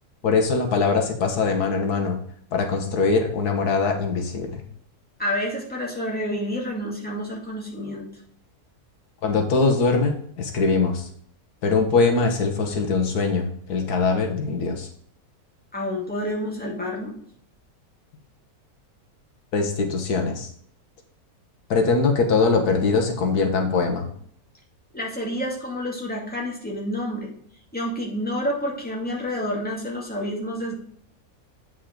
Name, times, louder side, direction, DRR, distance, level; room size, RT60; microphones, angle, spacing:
voice 1, 0.2-2.2 2.5-4.6 9.2-11.1 11.6-14.9 19.5-20.5 21.7-24.1, left 4 dB, 85° left, 4 dB, 1.7 m, -22 dB
voice 2, 5.2-8.1 15.7-17.2 24.9-27.3 27.7-30.7, equal, 5° left, -3 dB, 2.1 m, -29 dB
8.4 x 5.6 x 3.8 m, 0.63 s
omnidirectional pair, 1.6 m